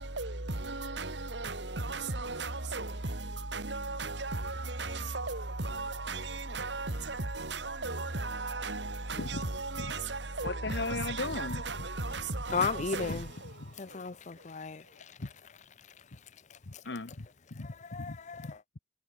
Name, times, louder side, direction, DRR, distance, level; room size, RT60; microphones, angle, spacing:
voice 1, 0.0-13.1, right 3 dB, 80° right, 2.9 m, -36 dB
voice 2, 9.2-9.5 9.8-9.9 10.4-11.6 12.6-12.7 13.1-13.2 13.5-13.7 15.2-15.3 16.7-18.8, left 3 dB, 75° left, 1.1 m, -37 dB
voice 3, 12.5-13.3 13.8-15.2 15.8-16.2 16.5-16.8 17.6-18.6, left 5 dB, 40° left, 0.6 m, -36 dB
head